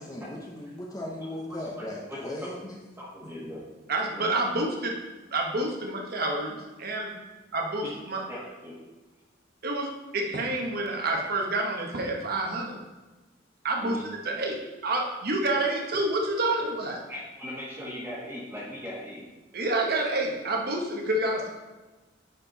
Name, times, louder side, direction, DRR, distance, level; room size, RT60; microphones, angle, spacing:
voice 1, 0.1-2.8, left 1 dB, 20° left, -2 dB, 0.8 m, -37 dB
voice 2, 3.0-3.6 4.2-4.3 7.8-7.9 8.3-8.8 13.8-14.0 17.1-19.2, left 1 dB, 10° right, -9 dB, 1.5 m, -39 dB
voice 3, 3.9-4.9 5.3-7.1 7.5-8.2 9.6-12.8 13.6-17.0 19.5-21.5, right 2 dB, 55° right, 1 dB, 1.2 m, -28 dB
9.6 x 4.5 x 4.0 m, 1.2 s
head